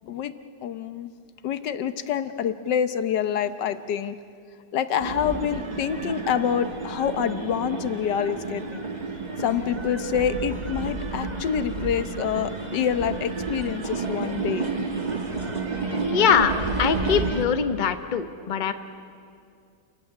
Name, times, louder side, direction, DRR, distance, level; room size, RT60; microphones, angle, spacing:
voice 1, 0.0-0.3 0.6-1.1 1.4-4.2 4.7-8.8 9.4-14.7, left 8 dB, 80° left, 11 dB, 1.5 m, -27 dB
sound 1, 5.0-17.5, right 3 dB, 25° right, 1.5 m, -31 dB
voice 2, 16.0-18.7, left 7 dB, 35° left, 8 dB, 0.9 m, -23 dB
29.0 x 15.0 x 9.9 m, 2.3 s
omnidirectional pair, 1.9 m